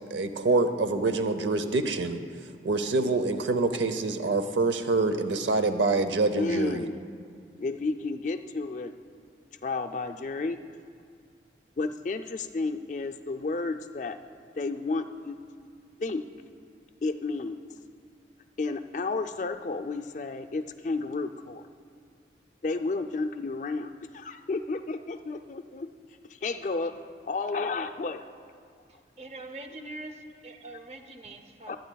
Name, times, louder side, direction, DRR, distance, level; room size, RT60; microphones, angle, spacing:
voice 1, 0.1-2.2 2.6-6.8, right 3 dB, 90° right, 9 dB, 0.7 m, -26 dB
voice 2, 6.4-7.0 7.6-8.9 9.6-10.6 11.8-14.2 14.5-15.4 16.0-16.5 17.0-17.6 18.6-21.6 22.6-25.9 26.3-26.9 27.2-28.2 31.7-31.8, left 3 dB, 40° left, 7 dB, 0.4 m, -32 dB
voice 3, 29.2-31.8, right 2 dB, 35° right, 6 dB, 0.7 m, -43 dB
27.0 x 9.2 x 2.3 m, 2.2 s
head